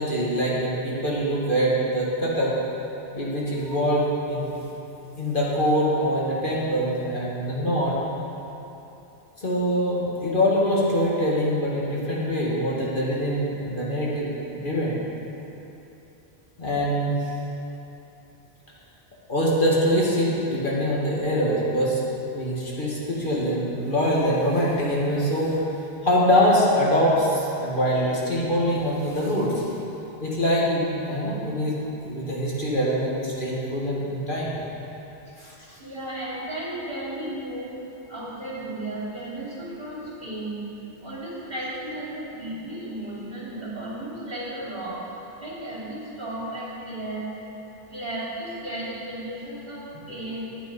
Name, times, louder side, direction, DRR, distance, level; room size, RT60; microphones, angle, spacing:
voice 1, 0.0-2.5 3.1-4.5 5.2-8.0 9.4-15.0 16.6-17.1 19.3-22.0 22.3-25.6 26.0-29.6 30.2-31.7 32.0-34.6 35.4-35.8, equal, 50° left, -6 dB, 2.1 m, -24 dB
voice 2, 35.8-37.7 38.1-40.6 41.0-45.0 45.4-47.3 47.9-50.5, right 1 dB, 55° right, -8 dB, 3.1 m, -34 dB
11.5 x 9.1 x 5.3 m, 3.0 s
omnidirectional pair, 1.1 m